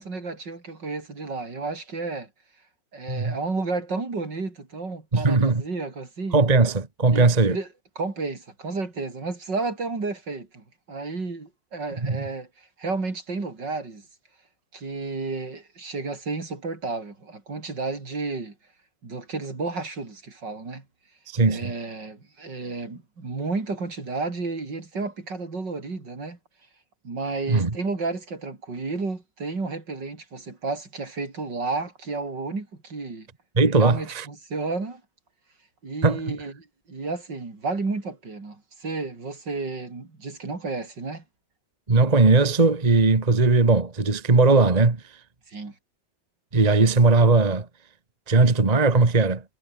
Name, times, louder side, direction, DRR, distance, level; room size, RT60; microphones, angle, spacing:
voice 1, 0.0-2.3 2.9-6.4 7.1-7.7 8.0-14.0 14.7-18.5 19.0-20.8 21.5-26.4 27.0-33.3 33.8-35.0 35.8-41.2 45.5-45.7, right 3 dB, 65° right, 4.9 m, -32 dB
voice 2, 5.1-5.6 6.3-7.6 12.0-12.2 21.3-21.7 27.5-27.8 33.6-34.3 36.0-36.4 41.9-45.0 46.5-47.7 48.3-49.4, right 3 dB, 20° right, 1.7 m, -19 dB
omnidirectional pair, 2.1 m